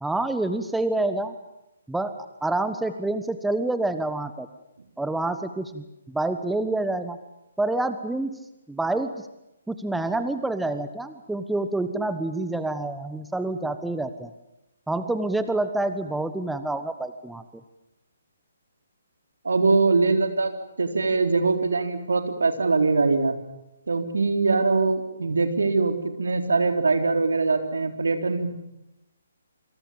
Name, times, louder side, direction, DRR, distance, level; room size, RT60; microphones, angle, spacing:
voice 1, 0.0-1.3 1.9-4.5 5.0-7.2 7.6-8.4 8.7-9.3 9.7-14.3 14.9-17.4, right 2 dB, 5° right, 10 dB, 1.3 m, -27 dB
voice 2, 19.4-23.3 23.9-28.5, right 3 dB, 65° right, 6 dB, 3.8 m, -22 dB
27.5 x 26.0 x 7.3 m, 0.91 s
figure-of-eight pair, 135°, 0 cm